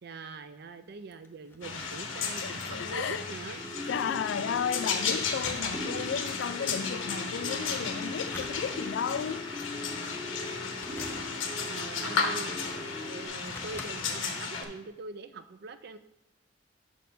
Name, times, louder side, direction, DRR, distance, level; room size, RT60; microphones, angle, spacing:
voice 1, 0.0-3.9 11.7-12.7 13.0-16.0, right 3 dB, 55° right, 0.4 m, -43 dB
sound 1, 0.9-3.7 4.0-4.1 5.2-6.2 8.0-9.1 9.6-10.0 10.7-11.7 12.5-12.6 13.2-13.9 14.4-14.5, left 2 dB, 10° left, 0.6 m, -47 dB
sound 2, 1.6-14.6, left 5 dB, 85° left, 1.1 m, -34 dB
voice 2, 2.4-3.3 3.9-9.5, left 7 dB, 65° left, 0.3 m, -34 dB
sound 3, 3.6-13.3, left 1 dB, 10° right, 1.4 m, -41 dB
6.4 x 5.3 x 5.5 m
head